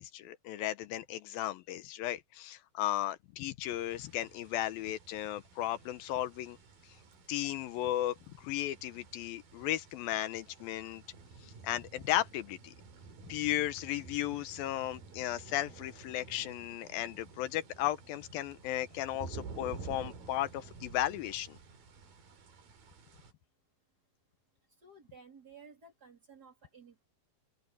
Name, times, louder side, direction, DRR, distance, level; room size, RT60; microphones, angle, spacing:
voice 1, 0.0-6.6 7.3-11.0 11.6-12.7 13.3-21.6, left 13 dB, 80° left, 2.6 m, -35 dB
sound 1, 3.6-23.3, right 4 dB, 70° right, 5.3 m, -51 dB
voice 2, 24.8-27.0, right 4 dB, 25° right, 3.2 m, -55 dB
open air
omnidirectional pair, 4.2 m